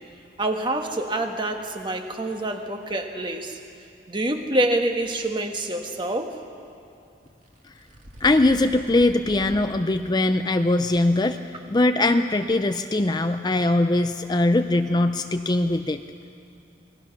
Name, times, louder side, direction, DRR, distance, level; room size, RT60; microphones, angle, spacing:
voice 1, 0.4-3.6 4.1-6.4, right 1 dB, 25° right, 4 dB, 1.4 m, -26 dB
sound 1, 5.0-5.3 7.3-9.6 10.1-10.2 10.9-11.0, equal, 40° right, 2.5 m, -44 dB
voice 2, 8.2-11.4 11.7-16.0, left 2 dB, 20° left, 8 dB, 0.5 m, -21 dB
28.5 x 20.0 x 5.9 m, 2.6 s
head